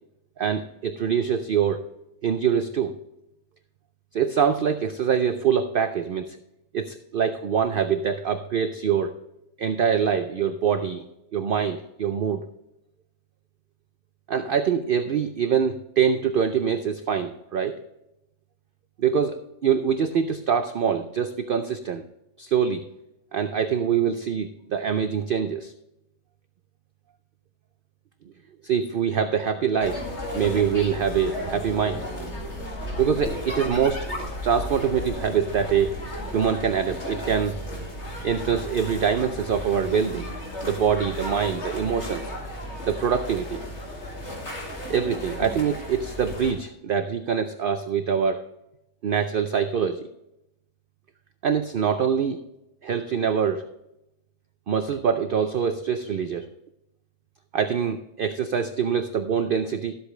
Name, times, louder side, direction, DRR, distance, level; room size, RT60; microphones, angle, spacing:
voice 1, 0.4-1.8 2.2-3.0 4.1-6.4 6.7-9.1 9.6-11.0 11.3-12.5 14.3-17.8 19.0-22.0 22.4-22.8 23.3-25.7 28.6-30.0 30.3-32.0 33.0-34.1 34.4-36.0 36.3-37.6 38.2-40.3 40.6-42.3 42.8-43.6 44.9-48.4 49.0-50.1 51.4-52.4 52.8-53.7 54.7-56.5 57.5-59.9, right 7 dB, 60° right, 9 dB, 0.6 m, -24 dB
sound 1, 29.8-46.5, equal, 55° left, 2.4 m, -34 dB
12.5 x 8.1 x 3.1 m, 0.89 s
omnidirectional pair, 1.4 m